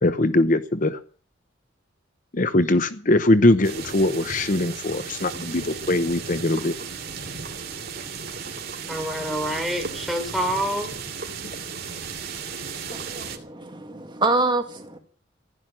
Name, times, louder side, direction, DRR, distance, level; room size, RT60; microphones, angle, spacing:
voice 1, 0.0-1.0 2.3-6.7, left 2 dB, 45° left, 11 dB, 0.9 m, -21 dB
sound 1, 3.6-13.4, right 5 dB, 55° right, 2.8 m, -35 dB
voice 2, 8.9-11.0, equal, ahead, 3 dB, 4.1 m, -27 dB
voice 3, 12.9-15.0, right 3 dB, 25° right, 5 dB, 2.2 m, -26 dB
15.5 x 11.5 x 7.5 m, 0.42 s
head